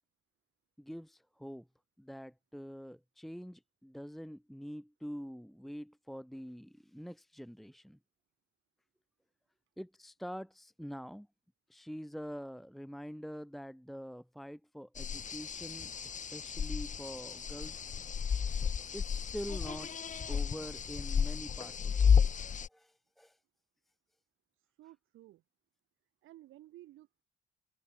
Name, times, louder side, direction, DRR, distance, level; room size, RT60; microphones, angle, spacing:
voice 1, 0.8-1.7 2.0-8.0 9.8-11.3 11.7-17.9 18.9-19.9 20.3-22.3 22.7-23.4, equal, ahead, 1.1 m, -45 dB
sound 1, 15.0-22.7, left 7 dB, 40° left, 1.1 m, -32 dB
voice 2, 24.5-25.4 26.2-27.2, right 15 dB, 85° right, 5.8 m, -55 dB
cardioid pair, 90°, 20 cm